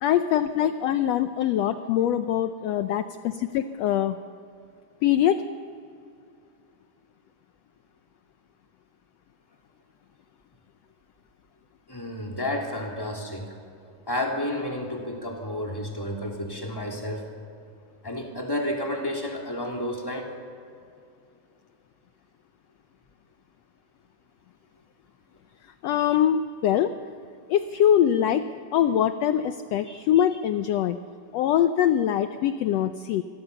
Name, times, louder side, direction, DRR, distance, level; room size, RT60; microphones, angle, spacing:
voice 1, 0.0-4.2 5.0-5.4 25.8-26.9 27.5-28.4 28.7-31.0 31.3-33.2, left 10 dB, 75° left, 9 dB, 1.5 m, -23 dB
voice 2, 11.9-13.5 14.1-17.2 18.0-20.3 25.8-26.2 29.9-30.0, left 1 dB, 5° left, 0 dB, 3.1 m, -31 dB
27.5 x 24.0 x 7.0 m, 2.6 s
omnidirectional pair, 3.7 m